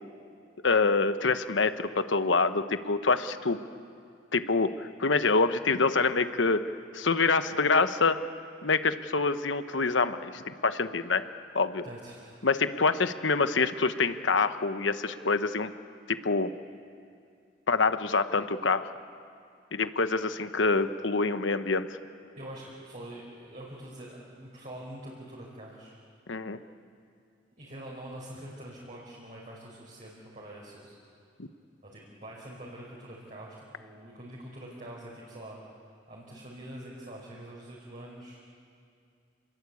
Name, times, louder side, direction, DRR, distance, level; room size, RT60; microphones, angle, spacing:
voice 1, 0.6-3.6 4.3-8.2 8.6-11.2 11.5-11.8 12.4-15.7 16.1-16.5 17.7-18.9 19.7-22.0 26.3-26.6 31.4-31.5, left 4 dB, 80° left, 10 dB, 1.1 m, -26 dB
voice 2, 11.8-12.5 22.4-25.9 27.6-30.9 31.8-35.6 36.1-38.4, right 1 dB, 40° right, -4 dB, 4.9 m, -45 dB
28.0 x 21.5 x 8.5 m, 2.5 s
head